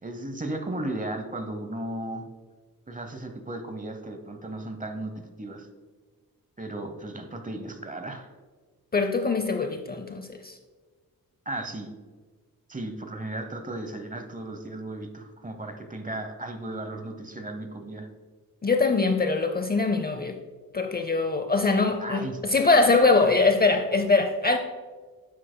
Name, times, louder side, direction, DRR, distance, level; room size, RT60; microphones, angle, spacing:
voice 1, 0.0-2.3 2.9-5.7 6.6-8.3 11.5-11.9 12.7-18.1 22.0-22.4, right 1 dB, 20° right, 6 dB, 0.9 m, -35 dB
voice 2, 8.9-10.6 18.6-20.4 20.7-24.6, left 3 dB, 25° left, 6 dB, 0.6 m, -23 dB
10.0 x 7.4 x 2.2 m, 1.4 s
cardioid pair, 75°, 36 cm